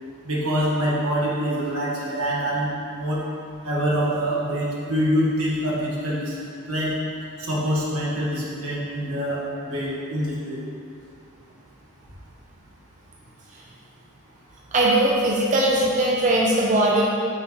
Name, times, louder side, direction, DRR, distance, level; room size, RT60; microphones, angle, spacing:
voice 1, 0.2-3.2 3.6-6.4 6.7-6.9 7.4-10.6, equal, 80° right, -5 dB, 1.5 m, -25 dB
voice 2, 14.7-17.0, right 1 dB, 35° right, -4 dB, 0.6 m, -20 dB
5.6 x 3.9 x 5.9 m, 2.5 s
head